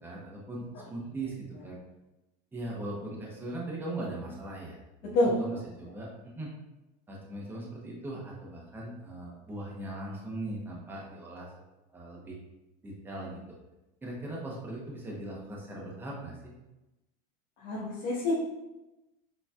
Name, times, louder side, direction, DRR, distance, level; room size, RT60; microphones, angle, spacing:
voice 1, 0.0-1.8 2.5-6.1 6.4-6.5 7.1-11.6 11.9-12.4 12.8-13.4 14.0-16.5, right 2 dB, 10° right, -4 dB, 0.9 m, -39 dB
voice 2, 5.0-5.4 17.6-18.4, left 1 dB, 80° left, -8 dB, 1.4 m, -27 dB
6.8 x 3.1 x 2.4 m, 0.99 s
supercardioid pair, 145°, 20 cm